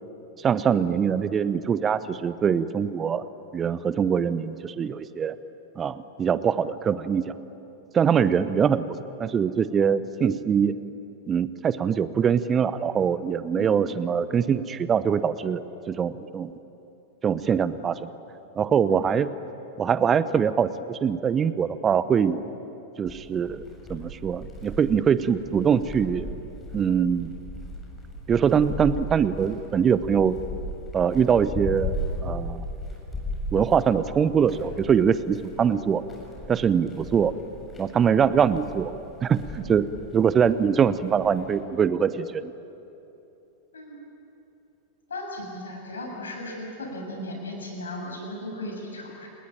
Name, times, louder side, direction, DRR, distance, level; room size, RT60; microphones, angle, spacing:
voice 1, 0.4-3.2 3.5-5.3 5.8-7.3 7.9-8.9 9.2-10.7 11.3-15.6 15.9-16.5 17.2-18.1 18.6-19.3 19.8-22.4 23.0-23.6 23.9-26.3 26.7-27.3 28.3-30.4 30.9-31.9 32.2-32.7 33.5-36.0 36.5-37.3 37.8-38.9 39.2-39.9 40.1-42.5, right 7 dB, 25° right, 15 dB, 0.9 m, -23 dB
sound 1, 23.1-41.6, equal, 15° left, 6.7 m, -37 dB
voice 2, 43.7-44.0 45.1-49.3, left 1 dB, 70° left, 1 dB, 7.0 m, -36 dB
29.0 x 20.0 x 9.0 m, 3.0 s
figure-of-eight pair, 90°, 0 cm